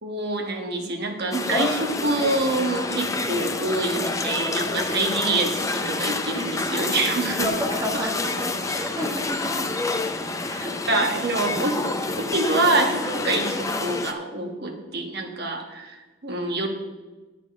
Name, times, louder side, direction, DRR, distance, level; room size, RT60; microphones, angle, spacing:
voice 1, 0.0-7.5 8.0-8.1 10.9-16.7, right 2 dB, 50° right, 3 dB, 1.4 m, -26 dB
sound 1, 1.3-14.1, left 3 dB, 15° left, 0.5 m, -28 dB
voice 2, 7.4-9.7 10.4-10.7, equal, 15° right, 0 dB, 1.6 m, -31 dB
9.1 x 8.2 x 5.3 m, 1.2 s
head